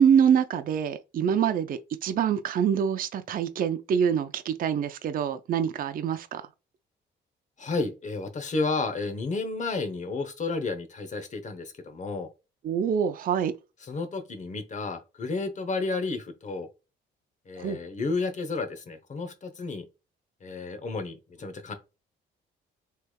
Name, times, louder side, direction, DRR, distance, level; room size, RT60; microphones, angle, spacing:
voice 1, 0.0-6.5 12.6-13.5 17.6-17.8, right 8 dB, 45° right, 0.4 m, -25 dB
voice 2, 7.6-12.3 13.8-16.7 17.5-19.9 20.4-21.7, left 3 dB, 40° left, 0.8 m, -32 dB
3.3 x 3.2 x 2.2 m
cardioid pair, 90°, 20 cm